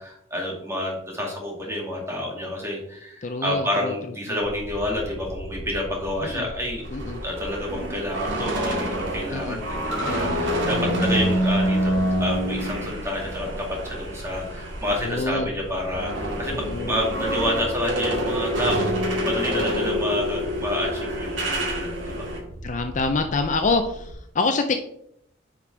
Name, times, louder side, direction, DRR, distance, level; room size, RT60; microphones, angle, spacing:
voice 1, 0.0-6.8 7.2-22.2, left 1 dB, 15° right, -2 dB, 2.4 m, -29 dB
voice 2, 3.2-4.4 6.2-6.5 6.9-7.2 9.3-9.6 10.0-10.4 10.7-11.3 15.0-15.5 16.5-17.0 22.6-24.8, left 3 dB, 40° left, 7 dB, 0.5 m, -27 dB
sound 1, 4.4-24.1, equal, 50° right, 3.0 m, -38 dB
sound 2, 6.8-15.2 15.5-22.4, equal, 70° right, 2.1 m, -27 dB
9.7 x 5.2 x 3.4 m, 0.73 s
head